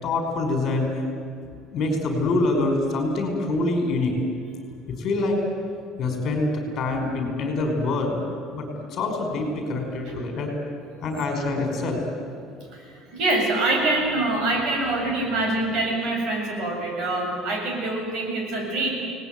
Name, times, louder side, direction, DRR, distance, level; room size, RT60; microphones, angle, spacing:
voice 1, 0.0-0.9 1.7-4.1 4.9-5.4 6.0-8.2 8.5-10.5 11.0-12.0, left 2 dB, 40° left, 3 dB, 5.4 m, -25 dB
voice 2, 12.7-18.9, right 2 dB, 50° right, 1 dB, 7.7 m, -25 dB
29.0 x 19.5 x 9.3 m, 2.2 s
cardioid pair, 155°, 0 cm